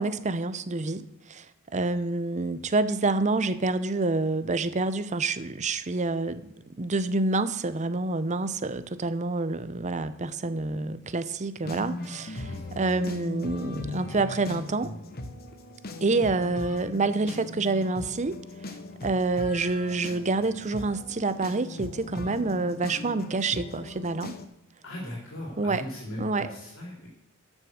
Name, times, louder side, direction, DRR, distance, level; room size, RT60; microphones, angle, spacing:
voice 1, 0.0-1.4 1.7-12.5 12.8-14.9 16.0-18.4 19.0-24.3 25.6-25.8 26.2-26.5, right 3 dB, 35° right, 13 dB, 0.7 m, -27 dB
sound 1, 11.6-24.5, left 2 dB, 45° left, 1.1 m, -39 dB
voice 2, 24.8-27.1, left 1 dB, 65° left, -3 dB, 3.5 m, -38 dB
13.0 x 6.4 x 6.4 m, 0.87 s
head